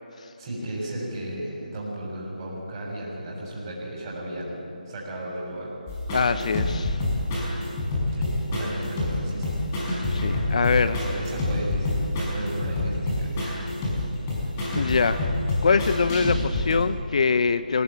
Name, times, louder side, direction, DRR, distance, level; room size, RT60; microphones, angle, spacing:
voice 1, 0.4-5.7 8.1-9.6 9.8-10.1 10.9-13.6, right 1 dB, 25° right, -4 dB, 6.8 m, -34 dB
sound 1, 5.9-16.7, left 1 dB, 20° left, 5.7 m, -27 dB
voice 2, 6.1-7.0 10.1-11.0 14.8-15.3 15.6-17.8, left 5 dB, 45° left, 13 dB, 0.7 m, -23 dB
24.0 x 18.0 x 8.8 m, 2.6 s
figure-of-eight pair, 165°, 5 cm